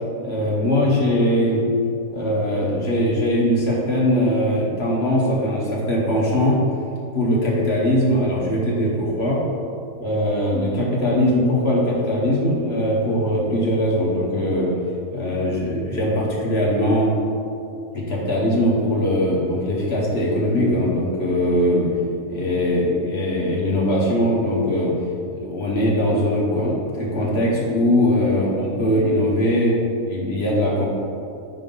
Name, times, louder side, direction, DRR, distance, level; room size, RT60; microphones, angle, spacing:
voice 1, 0.2-1.6 2.1-6.6 7.1-9.4 10.0-14.7 15.1-17.1 17.9-21.9 22.3-24.9 25.3-29.8 30.0-30.9, equal, 50° left, -4 dB, 1.2 m, -21 dB
4.9 x 3.9 x 5.3 m, 2.6 s
omnidirectional pair, 1.5 m